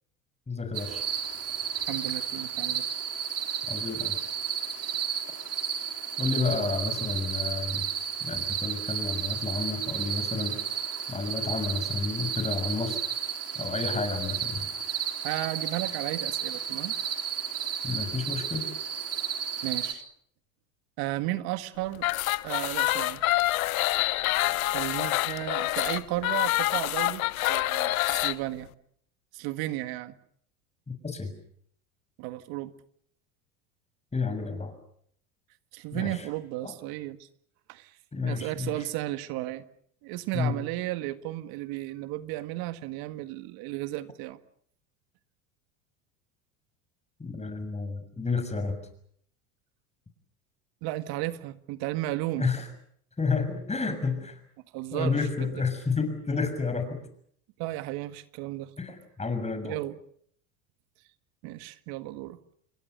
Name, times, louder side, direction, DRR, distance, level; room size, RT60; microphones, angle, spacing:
voice 1, 0.5-1.0 3.7-4.2 6.2-7.9 8.2-10.6 11.1-13.0 13.5-14.7 17.8-18.7 30.9-31.3 34.1-34.7 35.9-36.3 36.6-36.7 38.1-38.9 40.3-40.6 47.2-48.8 52.4-52.6 53.2-54.4 54.9-57.0 58.8-59.8, left 4 dB, 15° left, 8 dB, 6.7 m, -30 dB
sound 1, 0.7-19.9, right 8 dB, 35° right, 4.2 m, -32 dB
voice 2, 1.9-2.8 15.2-16.9 19.6-20.0 21.0-22.1 22.4-23.2 24.7-27.2 27.5-28.7 29.3-30.1 32.2-32.7 35.7-37.3 37.7-37.9 38.2-39.6 40.0-44.4 50.8-52.5 54.7-55.5 57.6-58.7 59.6-60.0 61.4-62.4, right 16 dB, 60° right, 12 dB, 1.8 m, -34 dB
sound 2, 21.9-28.4, left 17 dB, 80° left, 1.1 m, -27 dB
29.0 x 23.0 x 6.7 m, 0.64 s
hypercardioid pair, 95°, 42 cm